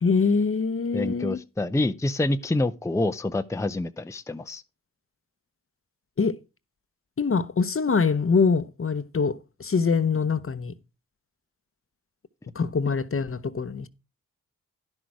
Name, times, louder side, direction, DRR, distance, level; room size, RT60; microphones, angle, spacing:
voice 1, 0.0-1.4 6.2-6.4 7.2-10.7 12.5-13.9, left 5 dB, 40° left, 0.8 m, -24 dB
voice 2, 0.9-4.6, left 2 dB, 10° left, 0.6 m, -27 dB
11.0 x 6.2 x 4.8 m
cardioid pair, 45°, 33 cm